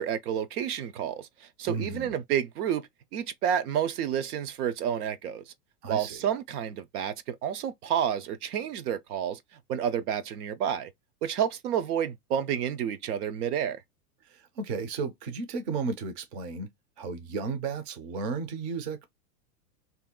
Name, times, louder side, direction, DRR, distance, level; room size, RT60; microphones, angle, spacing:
voice 1, 0.0-5.4 5.9-9.4 9.7-10.9 11.2-13.8, right 9 dB, 65° right, 0.7 m, -30 dB
voice 2, 1.7-2.1 5.8-6.2 14.3-16.7 17.0-19.1, right 4 dB, 30° right, 0.5 m, -34 dB
2.8 x 2.3 x 3.6 m
supercardioid pair, 150°, 48 cm